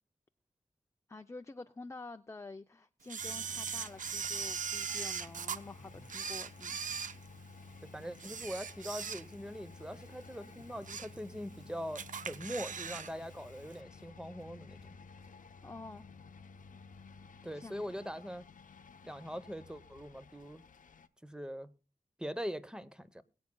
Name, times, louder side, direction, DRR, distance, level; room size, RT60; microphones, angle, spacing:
voice 1, 1.1-6.8 15.6-16.1 17.5-17.8, left 3 dB, 20° left, 0.5 m, -48 dB
Camera, 3.1-5.6 6.1-7.7 8.1-9.5 9.9-10.1 10.6-11.2 11.5-11.6 12.0-13.1 13.4-13.5, right 6 dB, 70° right, 0.5 m, -39 dB
sound 1, 3.2-21.1, left 4 dB, 80° left, 0.7 m, -54 dB
sound 2, 5.7-7.0 7.2-7.3 7.5-7.6 8.7-8.8 9.6-11.9 12.5-12.6 13.0-13.1 13.5-14.4 14.8-14.9 15.2-15.3 16.1-16.2, right 1 dB, 50° right, 5.7 m, -64 dB
voice 2, 7.9-15.0 17.4-18.4 19.0-20.6 21.2-21.7 22.2-23.2, equal, 5° right, 0.8 m, -42 dB
21.5 x 8.5 x 2.2 m
wide cardioid pair, 90°, 14 cm